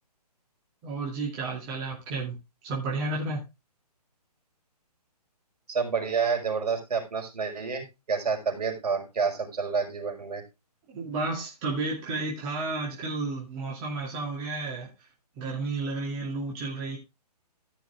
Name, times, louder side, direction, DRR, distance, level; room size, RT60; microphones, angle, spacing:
voice 1, 0.8-2.3 2.6-3.4 10.9-14.9 15.4-17.0, right 3 dB, 20° right, 2.5 m, -32 dB
voice 2, 5.7-10.4, right 5 dB, 70° right, 5.2 m, -29 dB
14.5 x 6.3 x 3.5 m
hypercardioid pair, 160°, 21 cm